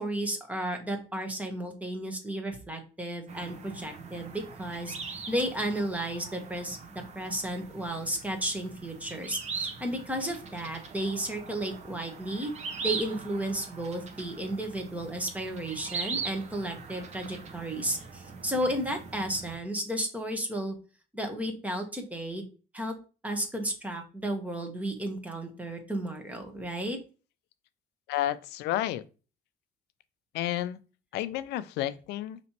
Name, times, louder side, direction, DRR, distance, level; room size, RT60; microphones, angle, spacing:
voice 1, 0.0-12.5 12.8-20.8 21.1-22.4 22.7-22.9 23.2-27.0, right 1 dB, 10° right, 1.1 m, -33 dB
sound 1, 3.3-19.6, right 5 dB, 40° right, 0.9 m, -41 dB
voice 2, 28.1-29.0 30.3-30.8 31.1-32.4, left 13 dB, 80° left, 0.4 m, -31 dB
5.1 x 3.0 x 2.9 m
cardioid pair, 110°, 17 cm